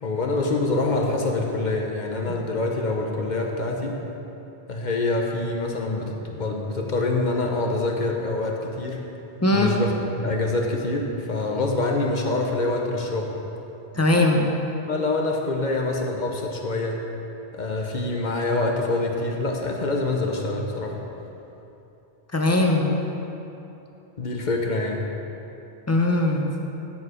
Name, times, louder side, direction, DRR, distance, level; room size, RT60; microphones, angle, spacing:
voice 1, 0.0-4.0 4.7-9.1 9.5-13.4 14.9-17.0 17.5-21.0 24.2-25.1, left 2 dB, 45° left, 1 dB, 0.9 m, -25 dB
voice 2, 9.4-9.7 13.9-14.5 22.3-22.9 25.9-26.5, left 2 dB, 15° left, 1 dB, 0.6 m, -20 dB
12.5 x 4.8 x 5.0 m, 3.0 s
omnidirectional pair, 1.1 m